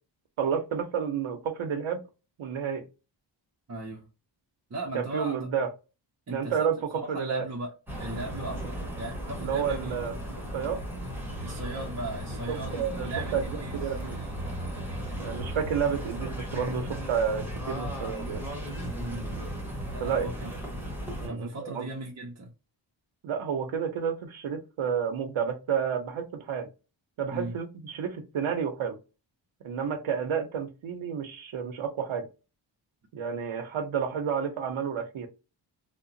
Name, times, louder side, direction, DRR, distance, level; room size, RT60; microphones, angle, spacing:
voice 1, 0.4-2.0 2.4-2.8 4.9-5.7 6.3-7.5 9.4-10.1 10.5-10.8 12.5-13.4 13.7-14.2 15.2-18.4 20.0-20.3 21.1-21.9 23.2-26.7 27.2-29.0 29.6-32.3 33.1-35.3, right 7 dB, 85° right, 0.7 m, -30 dB
voice 2, 3.7-4.1 4.7-5.5 6.3-6.7 6.9-7.7 8.0-10.0 11.4-13.8 18.9-19.3 19.9-20.5 21.3-22.5 27.3-27.5, right 2 dB, 35° right, 0.6 m, -37 dB
sound 1, 7.9-21.3, equal, 5° right, 1.1 m, -36 dB
2.8 x 2.1 x 2.5 m
wide cardioid pair, 140°, 47 cm